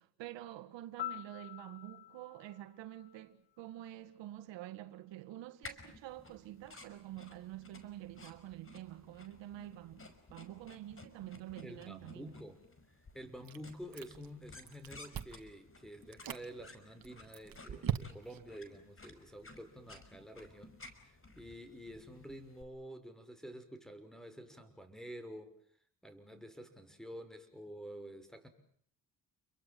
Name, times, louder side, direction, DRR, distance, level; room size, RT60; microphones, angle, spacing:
voice 1, 0.0-12.3, right 14 dB, 80° right, 1.8 m, -48 dB
Piano, 1.0-3.9 12.1-12.3, left 15 dB, 80° left, 1.7 m, -47 dB
sound 1, 5.6-22.6, left 2 dB, 30° left, 5.5 m, -56 dB
voice 2, 11.6-12.6 13.1-20.7 21.4-25.5 26.0-28.5, equal, ahead, 6.0 m, -49 dB
Chewing mastication, 13.4-14.4 14.7-15.5 16.0-16.4 17.0-18.5, right 9 dB, 55° right, 2.3 m, -40 dB
30.0 x 23.0 x 7.6 m
supercardioid pair, 75°, 43 cm